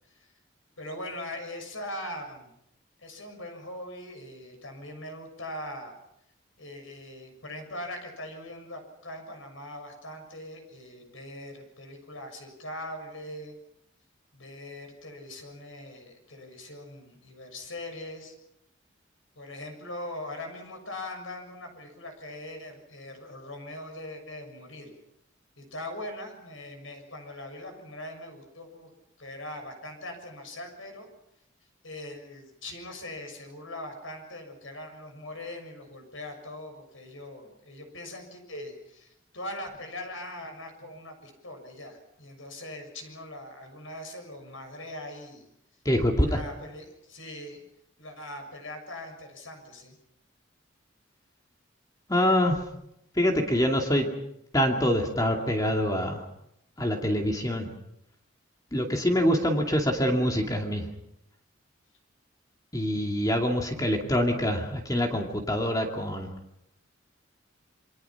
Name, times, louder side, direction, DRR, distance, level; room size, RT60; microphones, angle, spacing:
voice 1, 0.8-2.5 3.0-5.9 6.6-13.6 14.3-18.3 19.3-25.0 25.6-28.9 29.2-31.1 31.8-45.5 46.2-47.6 48.0-50.0, left 1 dB, 85° left, 5 dB, 6.7 m, -41 dB
voice 2, 45.8-46.4 52.1-52.6 53.2-54.1 54.5-56.2 56.8-57.7 58.7-60.9 62.7-66.3, equal, 20° left, 2 dB, 2.4 m, -25 dB
28.0 x 23.5 x 5.9 m, 0.80 s
head